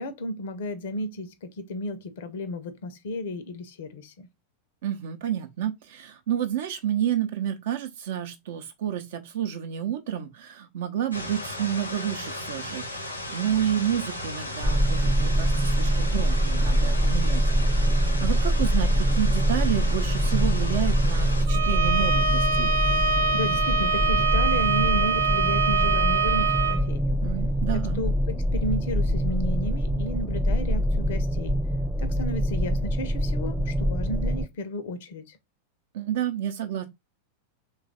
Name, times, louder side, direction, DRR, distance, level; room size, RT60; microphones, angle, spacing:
voice 1, 0.0-4.3 23.3-27.2 27.7-31.6 32.0-35.4, left 1 dB, 55° left, 0.5 m, -33 dB
voice 2, 4.8-17.8 18.2-22.7 27.2-28.0 35.9-36.8, right 10 dB, 55° right, 0.6 m, -30 dB
sound 1, 11.1-21.4, left 1 dB, 85° left, 0.8 m, -35 dB
sound 2, 14.6-34.5, equal, 5° right, 0.3 m, -24 dB
Bowed string instrument, 21.5-26.8, right 4 dB, 85° right, 0.8 m, -24 dB
3.2 x 2.3 x 3.8 m
figure-of-eight pair, 90°, 0 cm